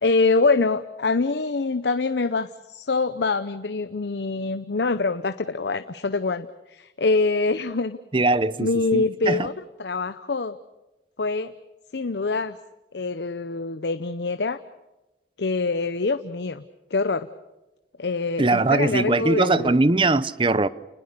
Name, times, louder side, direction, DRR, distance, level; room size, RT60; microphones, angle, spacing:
voice 1, 0.0-8.0 8.6-9.5 9.8-10.6 11.2-11.5 11.9-12.6 12.9-14.6 15.4-16.6 16.9-17.3 18.0-19.8, left 3 dB, 75° left, 0.8 m, -24 dB
voice 2, 8.1-9.5 18.4-20.7, right 2 dB, 30° right, 0.7 m, -21 dB
30.0 x 20.5 x 6.8 m
head